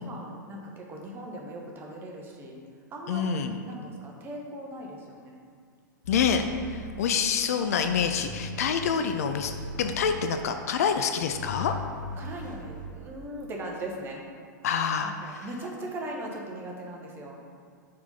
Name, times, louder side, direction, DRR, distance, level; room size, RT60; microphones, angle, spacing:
voice 1, 0.0-2.6 2.9-3.4 3.6-5.3 6.6-7.1 12.2-14.2 15.0-17.4, right 1 dB, 20° right, -1 dB, 0.9 m, -39 dB
voice 2, 3.1-3.6 6.1-9.5 9.8-11.7 14.6-15.5, left 7 dB, 50° left, 7 dB, 0.3 m, -27 dB
sound 1, 6.0-7.4 7.7-10.6 11.2-12.9, left 1 dB, 70° left, 1.3 m, -39 dB
4.6 x 4.2 x 5.4 m, 2.1 s
figure-of-eight pair, 100°, 10 cm